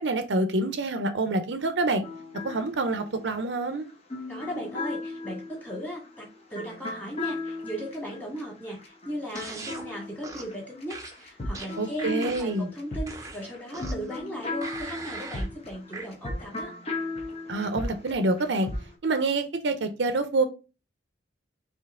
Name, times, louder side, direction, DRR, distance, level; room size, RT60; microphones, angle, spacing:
voice 1, 0.0-2.0 2.3-3.9 11.8-12.7 17.5-18.7 19.0-20.4, right 2 dB, 75° right, 0.6 m, -27 dB
sound 1, 2.0-10.8 11.1-18.9, left 2 dB, 35° left, 1.0 m, -37 dB
voice 2, 4.3-16.7, equal, 10° left, 1.8 m, -37 dB
sound 2, 9.3-9.9 10.2-10.5 10.9-12.6 13.1-14.1 14.6-15.5 15.9-16.1, right 3 dB, 20° right, 0.7 m, -40 dB
4.4 x 2.8 x 3.5 m
head